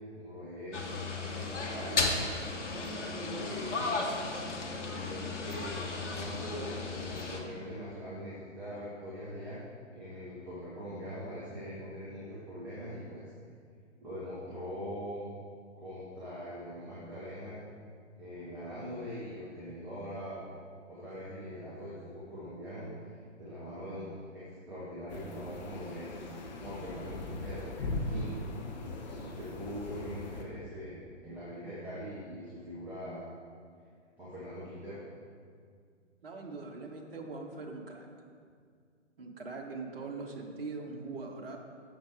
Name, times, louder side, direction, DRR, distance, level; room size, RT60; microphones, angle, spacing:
voice 1, 0.1-2.1 2.7-3.9 4.9-9.6 9.9-13.2 14.0-15.3 15.8-17.6 18.1-20.5 20.9-28.4 28.9-33.3 34.2-35.0, equal, 5° right, -10 dB, 0.6 m, -42 dB
sound 1, 0.7-7.4, left 3 dB, 65° left, 1.2 m, -35 dB
sound 2, 25.1-30.4, left 2 dB, 35° left, 0.8 m, -40 dB
voice 2, 36.2-38.1 39.2-41.6, right 3 dB, 50° right, 1 dB, 1.2 m, -41 dB
7.1 x 5.9 x 4.6 m, 2.2 s
figure-of-eight pair, 125°, 38 cm